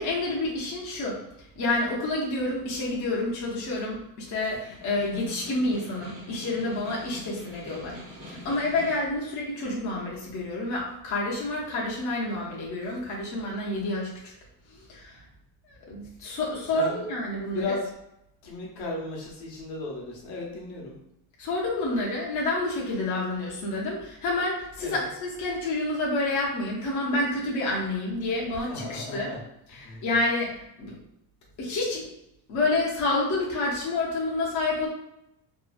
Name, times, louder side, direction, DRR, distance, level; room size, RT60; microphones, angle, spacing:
voice 1, 0.0-8.0 8.2-14.3 14.7-15.2 15.7-17.7 21.4-29.3 29.7-31.0 31.6-32.1 32.5-34.9, left 2 dB, 50° left, -4 dB, 0.6 m, -29 dB
Snare drum, 4.6-9.2, equal, 55° right, 1.1 m, -45 dB
voice 2, 17.5-17.8 18.4-21.0 24.8-25.1 28.7-29.4 29.7-30.0, left 3 dB, 75° left, -2 dB, 0.9 m, -35 dB
2.7 x 2.4 x 2.4 m, 0.84 s
cardioid pair, 175°, 39 cm